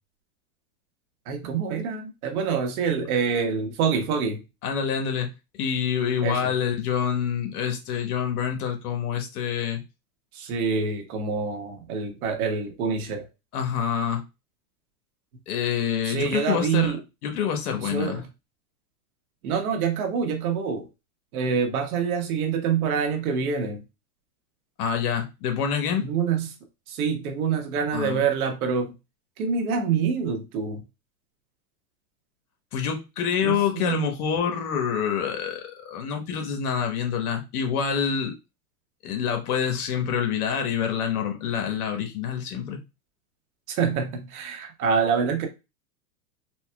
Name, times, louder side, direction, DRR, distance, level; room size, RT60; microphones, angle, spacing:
voice 1, 1.3-4.4 6.2-6.4 10.3-13.3 16.0-17.0 17.8-18.3 19.4-20.9 21.3-23.8 26.0-26.5 26.9-28.9 29.4-30.8 33.4-34.0 43.7-45.5, right 6 dB, 65° right, 1.2 m, -26 dB
voice 2, 4.6-5.3 5.6-9.8 13.5-14.2 15.5-17.0 17.2-18.2 24.8-26.1 27.9-28.3 32.7-38.3 39.0-42.8, left 7 dB, 70° left, 1.2 m, -27 dB
4.2 x 2.3 x 2.2 m
supercardioid pair, 140°, 47 cm